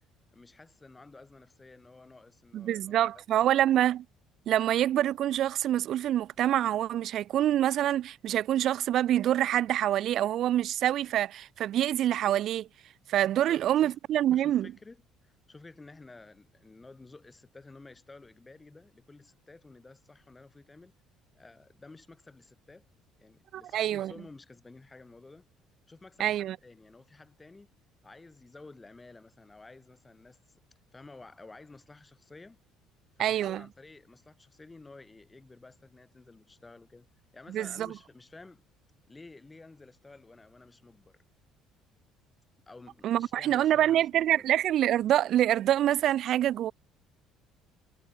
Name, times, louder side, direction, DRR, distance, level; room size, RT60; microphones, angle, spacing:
voice 1, 0.3-3.5 13.4-14.0 14.3-20.9 21.3-22.8 23.2-25.5 25.9-27.7 28.0-30.6 30.9-32.6 33.2-37.1 37.3-38.6 39.1-41.2 42.7-44.4, left 3 dB, 10° left, 5.1 m, -52 dB
voice 2, 2.5-4.1 4.5-12.7 13.1-14.7 23.5-24.1 26.2-26.6 33.2-33.6 37.5-37.9 43.0-46.7, right 12 dB, 45° right, 1.6 m, -26 dB
cardioid pair, 180°, 0 cm